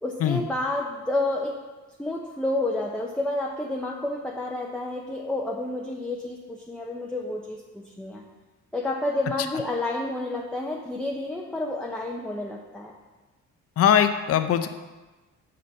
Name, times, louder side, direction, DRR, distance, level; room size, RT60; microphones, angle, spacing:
voice 1, 0.0-1.6 2.0-8.2 8.7-12.9, left 2 dB, 5° left, -1 dB, 0.8 m, -30 dB
voice 2, 13.8-14.7, left 9 dB, 50° left, 9 dB, 0.6 m, -20 dB
6.6 x 5.2 x 6.9 m, 1.2 s
cardioid pair, 90°, 30 cm